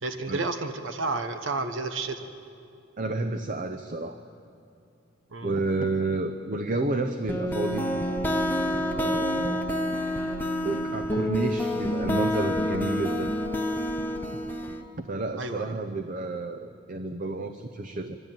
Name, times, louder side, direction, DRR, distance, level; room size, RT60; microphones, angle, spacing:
voice 1, 0.0-2.3 5.3-5.5 15.4-15.7, right 3 dB, 80° right, 8 dB, 1.0 m, -31 dB
voice 2, 3.0-4.2 5.4-7.9 8.8-9.7 10.6-13.4 14.3-14.4 15.0-18.2, right 2 dB, 40° right, 8 dB, 0.7 m, -30 dB
sound 1, 7.3-14.8, left 1 dB, 10° left, 0.9 m, -28 dB
23.5 x 13.0 x 9.0 m, 2.6 s
head